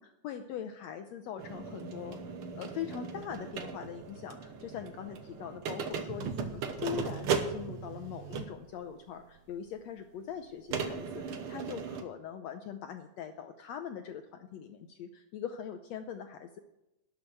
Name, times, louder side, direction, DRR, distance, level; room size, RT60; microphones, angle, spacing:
voice 1, 0.0-16.6, left 8 dB, 85° left, 7 dB, 1.5 m, -42 dB
sound 1, 1.4-8.7 9.5-9.6 10.7-12.0, right 6 dB, 65° right, 1.4 m, -37 dB
12.5 x 7.1 x 9.4 m, 0.94 s
omnidirectional pair, 3.9 m